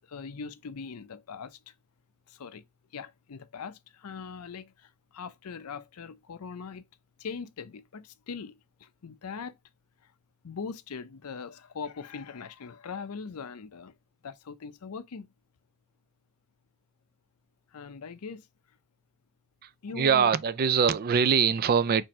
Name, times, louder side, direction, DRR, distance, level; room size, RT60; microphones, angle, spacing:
voice 1, 0.0-1.7 2.3-2.6 2.9-6.8 7.2-9.6 10.4-14.0 14.2-15.3 17.7-18.5 19.8-20.3, left 5 dB, 80° left, 0.6 m, -41 dB
voice 2, 19.6-22.0, right 6 dB, 45° right, 0.4 m, -23 dB
4.5 x 2.6 x 4.2 m
head